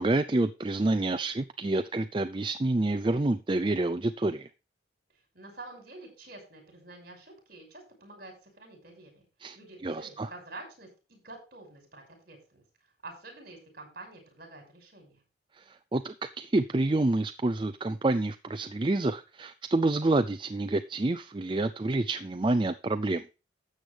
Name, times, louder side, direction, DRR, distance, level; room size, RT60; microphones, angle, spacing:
voice 1, 0.0-4.5 9.4-9.6 9.8-10.3 15.6-23.2, right 2 dB, 25° right, 10 dB, 0.4 m, -28 dB
voice 2, 5.3-9.3 9.5-12.6 13.0-15.2, right 2 dB, 50° right, 3 dB, 5.8 m, -48 dB
13.0 x 7.9 x 3.4 m, 0.31 s
head